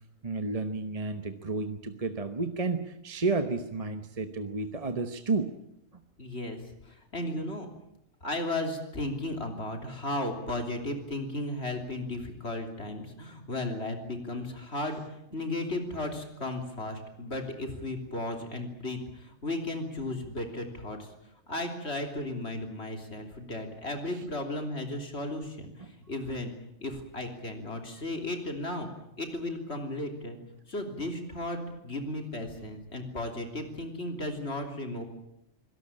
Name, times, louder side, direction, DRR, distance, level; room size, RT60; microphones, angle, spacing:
voice 1, 0.2-5.5 24.1-24.3 25.8-25.9, right 3 dB, 30° right, 8 dB, 1.1 m, -31 dB
voice 2, 6.2-6.6 6.8-7.7 8.2-21.1 21.5-26.5 26.8-28.9 29.2-30.4 30.7-35.1, left 1 dB, 50° left, 4 dB, 3.5 m, -35 dB
25.0 x 18.0 x 8.9 m, 0.79 s
omnidirectional pair, 1.4 m